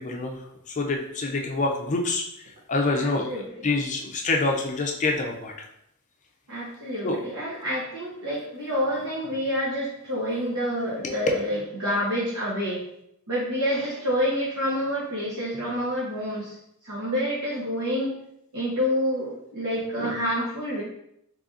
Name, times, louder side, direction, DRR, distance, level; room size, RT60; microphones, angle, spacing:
voice 1, 0.0-2.2 2.7-3.3 3.6-5.5 7.0-7.2 11.0-11.1, left 3 dB, 35° left, 1 dB, 0.5 m, -26 dB
voice 2, 3.0-3.7 6.5-12.8 13.3-16.6 16.8-18.1 18.5-20.8, equal, 75° right, -7 dB, 0.9 m, -28 dB
3.8 x 3.3 x 2.4 m, 0.74 s
head